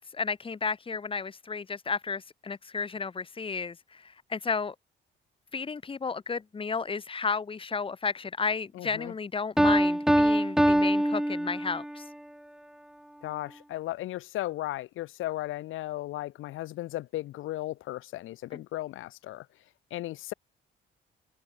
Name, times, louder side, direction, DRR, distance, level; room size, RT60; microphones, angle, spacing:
voice 1, 0.0-4.7 5.5-12.0 18.5-18.6, left 5 dB, 25° left, 1.0 m, -33 dB
voice 2, 8.7-9.1 13.2-19.5 19.9-20.3, left 15 dB, 85° left, 2.1 m, -36 dB
Piano, 9.6-12.0, equal, ahead, 0.6 m, -23 dB
open air
cardioid pair, 90°, 20 cm